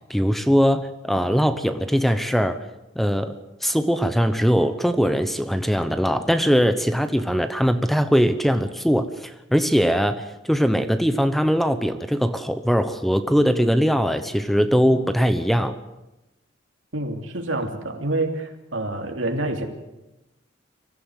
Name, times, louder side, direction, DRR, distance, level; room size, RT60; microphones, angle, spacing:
voice 1, 0.1-2.6 2.9-15.8, equal, ahead, 10 dB, 0.9 m, -21 dB
voice 2, 16.9-19.6, right 2 dB, 85° right, 4 dB, 3.0 m, -27 dB
24.5 x 15.5 x 8.0 m, 0.97 s
head